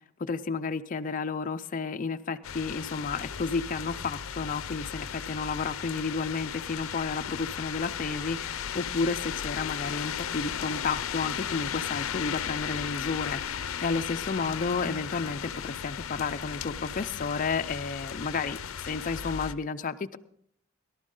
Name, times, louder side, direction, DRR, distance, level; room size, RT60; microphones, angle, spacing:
voice 1, 0.2-20.2, left 4 dB, 40° left, 9 dB, 0.5 m, -32 dB
sound 1, 2.4-19.5, left 8 dB, 90° left, 0.5 m, -36 dB
18.5 x 12.0 x 3.7 m, 0.67 s
head